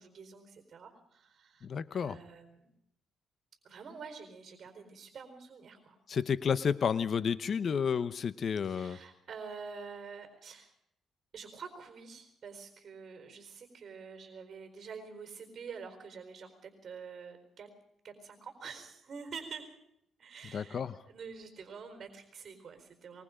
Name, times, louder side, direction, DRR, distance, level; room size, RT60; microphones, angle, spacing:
voice 1, 0.0-1.7 1.9-2.7 3.6-6.0 8.6-10.7 11.3-17.7 18.0-19.8 20.2-23.2, right 5 dB, 50° right, 6 dB, 4.3 m, -47 dB
voice 2, 1.6-2.2 6.1-9.0 20.5-20.9, left 6 dB, 50° left, 15 dB, 0.9 m, -31 dB
23.5 x 21.5 x 5.1 m, 0.76 s
cardioid pair, 90°, 0 cm